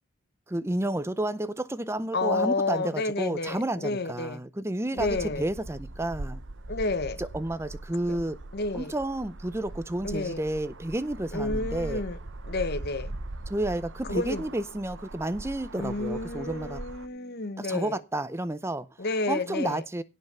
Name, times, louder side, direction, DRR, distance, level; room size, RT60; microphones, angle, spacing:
voice 1, 0.5-6.4 7.2-8.4 8.7-12.0 13.5-16.8 17.6-18.9 19.3-20.0, right 1 dB, 10° right, 0.6 m, -31 dB
voice 2, 2.1-4.4 4.9-5.4 6.7-7.2 8.5-8.9 10.0-10.4 11.3-12.2 12.4-13.1 14.1-14.4 15.8-18.0 19.0-19.8, left 3 dB, 45° left, 1.0 m, -30 dB
sound 1, 5.0-17.1, right 2 dB, 55° right, 1.0 m, -40 dB
17.0 x 5.7 x 6.7 m
head